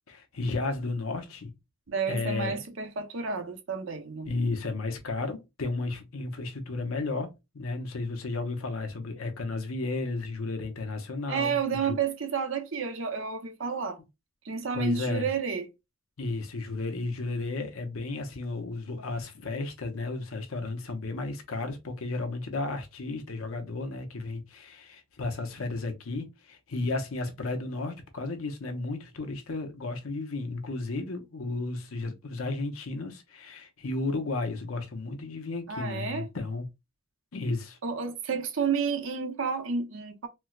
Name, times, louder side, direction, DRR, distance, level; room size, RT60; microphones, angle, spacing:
voice 1, 0.1-1.5 2.1-2.6 4.3-12.0 14.7-15.3 16.2-36.7 37.3-37.8, left 3 dB, 75° left, 0.8 m, -33 dB
voice 2, 1.9-4.3 11.3-14.0 14.4-15.7 35.7-36.3 37.8-40.3, right 5 dB, 65° right, 0.7 m, -30 dB
4.4 x 2.1 x 2.3 m
head